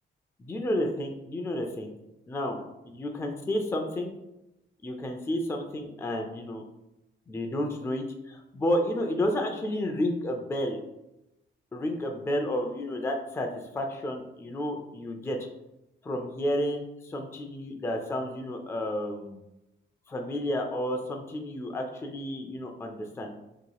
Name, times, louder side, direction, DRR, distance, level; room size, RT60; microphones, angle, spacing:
voice 1, 0.4-1.9 2.3-2.6 3.0-4.1 4.8-6.6 7.3-10.8 11.7-15.4 16.0-19.4 20.1-23.3, left 1 dB, 15° left, 3 dB, 0.4 m, -31 dB
5.9 x 2.9 x 2.3 m, 0.92 s
wide cardioid pair, 170°, 20 cm